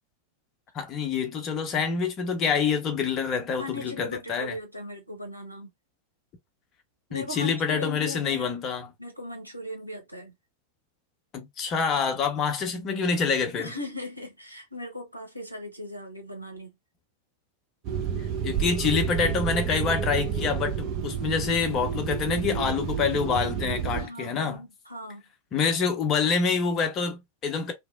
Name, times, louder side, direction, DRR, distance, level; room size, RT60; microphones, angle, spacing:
voice 1, 0.7-4.5 7.1-8.9 11.3-13.7 18.2-24.6 25.5-27.7, left 5 dB, 30° left, 0.7 m, -27 dB
voice 2, 3.6-5.7 7.1-8.5 9.0-10.3 13.6-16.7 24.0-25.2, left 1 dB, 90° right, 0.7 m, -38 dB
sound 1, 17.8-24.1, right 8 dB, 40° right, 0.8 m, -30 dB
2.9 x 2.0 x 2.3 m
figure-of-eight pair, 90°, 0 cm